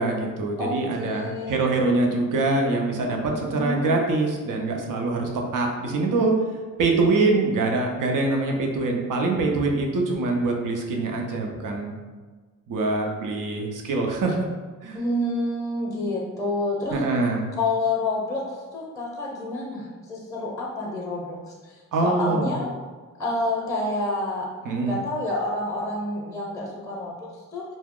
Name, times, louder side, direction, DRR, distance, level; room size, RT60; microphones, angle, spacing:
voice 1, 0.0-6.3 6.8-11.9 12.7-14.4 14.8-15.0 16.9-17.4 21.9-22.6 24.6-25.0, right 3 dB, 75° right, 1 dB, 0.6 m, -24 dB
voice 2, 0.6-1.7 3.3-3.9 14.9-17.0 17.6-22.7 23.2-24.5 24.8-27.6, left 2 dB, 10° left, -4 dB, 0.6 m, -28 dB
2.8 x 2.1 x 3.6 m, 1.4 s
cardioid pair, 100°, 32 cm